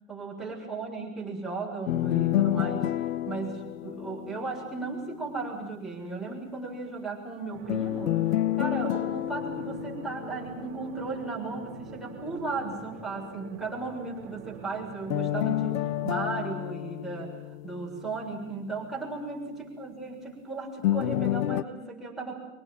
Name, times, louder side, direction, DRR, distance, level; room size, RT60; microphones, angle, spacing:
voice 1, 0.1-3.0 3.2-8.2 8.6-17.3 17.6-22.4, right 3 dB, ahead, -4 dB, 6.8 m, -36 dB
sound 1, 1.9-4.9 7.7-10.9 15.1-18.2 20.8-21.6, left 14 dB, 75° left, 1.2 m, -29 dB
sound 2, 7.5-16.2, right 5 dB, 30° right, 3.9 m, -45 dB
26.0 x 18.5 x 9.1 m, 0.91 s
supercardioid pair, 145°, 40 cm